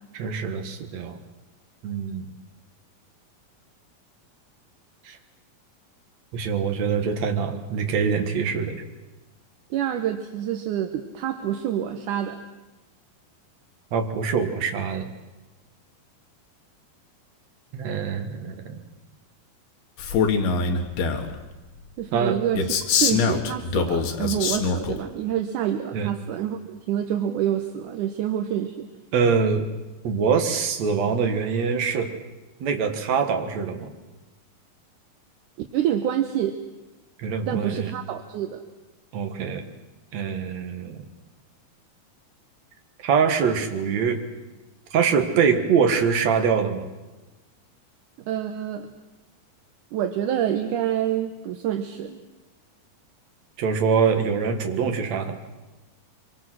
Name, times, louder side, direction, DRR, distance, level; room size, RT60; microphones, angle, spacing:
voice 1, 0.1-1.2 1.8-2.3 5.0-5.2 6.3-8.8 13.9-15.1 17.7-18.8 22.1-22.4 25.9-26.1 29.1-29.7 30.0-32.1 32.6-33.9 37.2-37.9 39.1-39.6 40.1-41.1 43.0-44.2 44.9-46.8 53.6-55.4, right 6 dB, 55° right, 5 dB, 2.7 m, -24 dB
voice 2, 9.7-12.4 22.0-22.7 23.0-28.9 35.7-36.6 37.5-38.6 48.3-48.9 49.9-52.2, right 10 dB, 70° right, 6 dB, 2.2 m, -27 dB
Male speech man speaking, 20.0-21.3 22.6-25.0, left 5 dB, 90° left, 3.6 m, -23 dB
25.5 x 24.0 x 6.3 m, 1.1 s
omnidirectional pair, 4.2 m